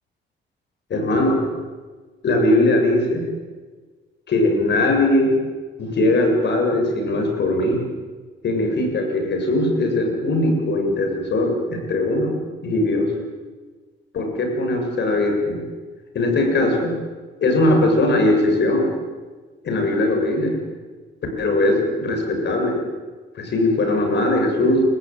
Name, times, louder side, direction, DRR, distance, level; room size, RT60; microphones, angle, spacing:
voice 1, 0.9-1.4 2.2-3.3 4.3-5.4 5.8-7.8 8.4-12.3 12.6-13.1 14.1-15.6 16.1-16.9 17.4-18.9 19.6-20.6 21.4-22.8 23.3-24.8, left 1 dB, 60° left, 3 dB, 7.6 m, -20 dB
30.0 x 15.0 x 9.3 m, 1.4 s
cardioid pair, 90°, 20 cm